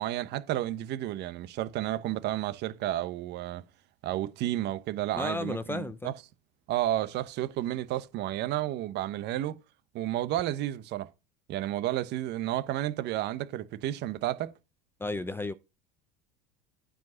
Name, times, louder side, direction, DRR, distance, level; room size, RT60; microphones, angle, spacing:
voice 1, 0.0-3.6 4.0-6.1 6.7-9.6 9.9-11.1 11.5-14.5, right 13 dB, 55° right, 1.0 m, -31 dB
voice 2, 5.2-6.1 15.0-15.5, left 2 dB, 10° left, 0.6 m, -33 dB
9.2 x 5.0 x 6.3 m
supercardioid pair, 105°, 21 cm